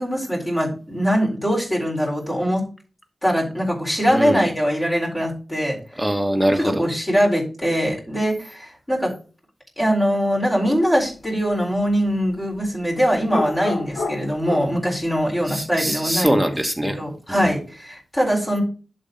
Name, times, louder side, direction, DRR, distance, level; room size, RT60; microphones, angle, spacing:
voice 1, 0.0-2.6 3.2-5.8 6.5-9.1 9.8-16.4 16.9-18.6, equal, 20° left, -3 dB, 4.1 m, -22 dB
voice 2, 4.1-4.4 6.0-6.8 15.5-17.0 17.3-17.5, equal, 5° right, 5 dB, 1.2 m, -22 dB
sound 1, 10.6-10.8 13.3-14.8, left 3 dB, 80° left, 1.2 m, -29 dB
11.0 x 4.3 x 3.8 m, 0.36 s
wide cardioid pair, 120°, 0 cm